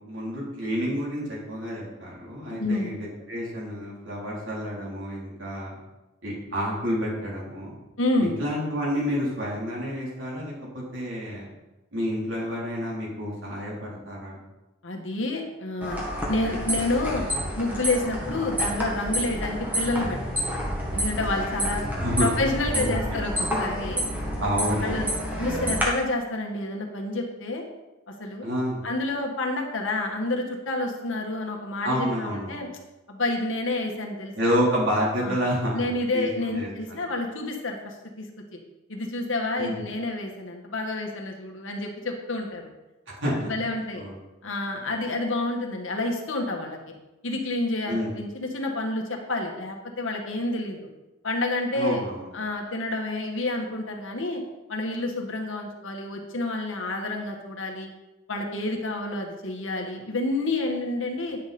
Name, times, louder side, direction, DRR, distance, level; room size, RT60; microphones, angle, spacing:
voice 1, 0.0-5.8 6.2-7.8 8.4-11.5 11.9-14.4 22.0-22.3 22.7-22.9 24.4-25.1 28.4-28.9 31.8-32.6 34.4-37.0 39.6-39.8 43.2-43.5 44.0-44.2 47.9-48.1 51.7-52.3, equal, 75° right, -5 dB, 3.7 m, -29 dB
voice 2, 2.5-2.9 8.0-8.4 14.8-16.0 16.3-17.3 17.6-21.8 22.2-24.0 24.8-25.1 25.4-27.6 28.1-28.5 28.8-32.7 33.1-34.5 35.2-35.4 35.7-38.3 38.9-42.7 43.3-44.0 44.4-46.8 47.2-50.9 51.2-52.0 52.3-54.4 54.7-57.9 58.3-61.4, left 2 dB, 80° left, 1 dB, 1.7 m, -29 dB
sound 1, 15.8-25.8, equal, 10° right, 2.0 m, -29 dB
10.0 x 6.9 x 4.3 m, 1.0 s
head